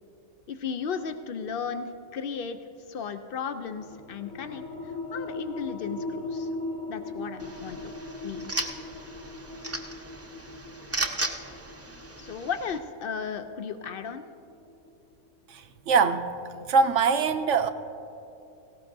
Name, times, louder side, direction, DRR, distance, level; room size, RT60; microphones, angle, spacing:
voice 1, 0.5-2.6 2.9-6.5 6.9-8.0 8.2-8.5 12.2-14.3, left 6 dB, 80° left, 9 dB, 0.5 m, -35 dB
sound 1, 3.7-14.9, left 2 dB, 60° left, 2.2 m, -39 dB
sound 2, 7.4-12.8, right 2 dB, 15° right, 0.4 m, -36 dB
voice 2, 15.5-16.3 16.7-17.7, right 5 dB, 70° right, 9 dB, 0.8 m, -23 dB
18.0 x 17.5 x 2.6 m, 2.8 s
omnidirectional pair, 1.5 m